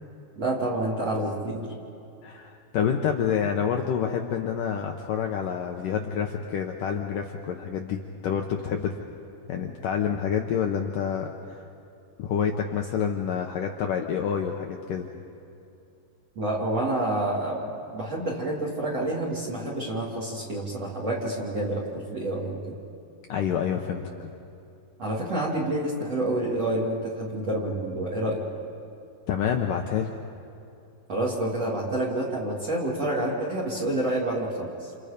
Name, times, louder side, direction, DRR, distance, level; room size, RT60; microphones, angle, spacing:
voice 1, 0.4-1.6 16.4-21.8 22.1-22.6 25.0-28.5 31.1-34.9, right 1 dB, 40° right, -3 dB, 3.4 m, -28 dB
voice 2, 2.2-9.0 9.5-11.6 12.2-15.1 23.3-24.0 29.3-30.1, left 7 dB, 75° left, 3 dB, 1.9 m, -28 dB
30.0 x 29.0 x 5.2 m, 2.7 s
omnidirectional pair, 5.2 m